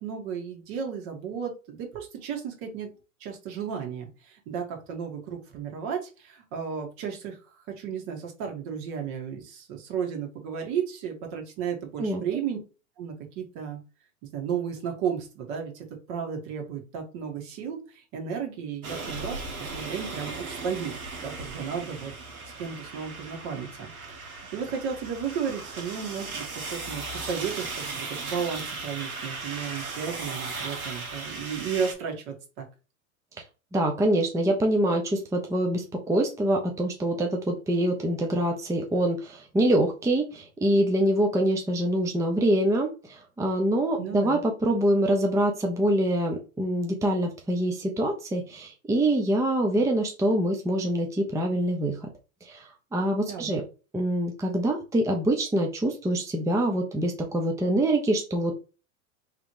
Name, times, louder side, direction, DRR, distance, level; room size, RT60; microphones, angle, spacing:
voice 1, 0.0-2.9 3.2-7.4 7.7-12.6 13.0-13.8 14.3-22.1 22.6-32.7 44.0-44.4 53.3-53.6, right 7 dB, 50° right, 2 dB, 1.8 m, -34 dB
sound 1, 18.8-31.9, right 3 dB, 85° right, 1.4 m, -37 dB
voice 2, 33.7-52.0 52.5-52.6 52.9-53.6 53.9-58.6, right 1 dB, 5° right, 2 dB, 0.7 m, -25 dB
3.3 x 3.1 x 4.8 m, 0.33 s
hypercardioid pair, 95°, 42 cm